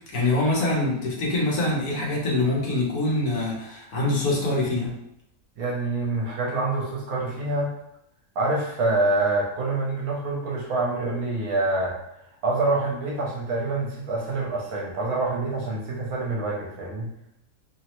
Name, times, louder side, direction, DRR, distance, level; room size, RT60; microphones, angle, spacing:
voice 1, 0.1-4.9, left 2 dB, 75° left, -4 dB, 1.3 m, -24 dB
voice 2, 5.6-7.7 8.4-12.0 12.4-17.1, right 2 dB, 75° right, -3 dB, 1.2 m, -26 dB
3.2 x 2.0 x 2.9 m, 0.79 s
omnidirectional pair, 1.6 m